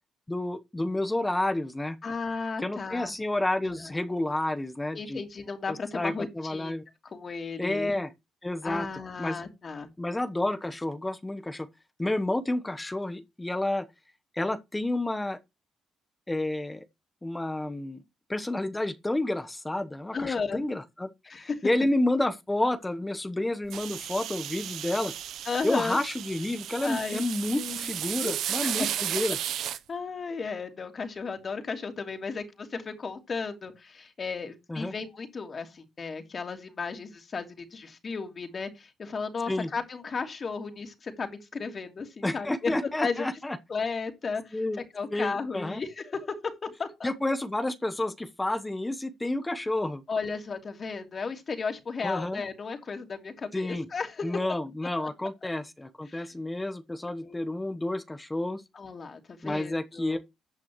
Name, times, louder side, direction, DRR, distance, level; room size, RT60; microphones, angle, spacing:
voice 1, 0.3-2.0 2.6-5.2 5.7-6.8 7.6-8.1 8.4-8.9 9.2-9.4 10.0-11.7 12.0-13.8 14.3-15.4 16.3-16.8 17.2-18.0 18.3-25.1 25.6-29.4 34.7-34.9 39.5-39.7 42.2-43.6 44.5-44.8 45.1-45.8 47.0-50.0 52.0-52.4 53.5-53.9 54.2-58.6 59.4-60.2, left 1 dB, 15° left, 1.0 m, -30 dB
voice 2, 2.0-3.1 3.6-3.9 4.9-6.7 7.0-7.9 8.6-9.9 20.1-20.6 21.3-21.7 25.4-26.0 26.8-27.2 27.5-27.9 28.2-28.4 28.8-28.9 29.9-43.3 43.7-44.6 44.9-46.4 46.8-47.1 50.1-54.4 55.0-55.1 56.1-56.3 57.2-57.4 58.7-60.2, left 4 dB, 40° left, 2.8 m, -34 dB
sound 1, 23.7-29.8, right 11 dB, 80° right, 0.7 m, -34 dB
14.0 x 8.3 x 3.1 m
cardioid pair, 90°, 0 cm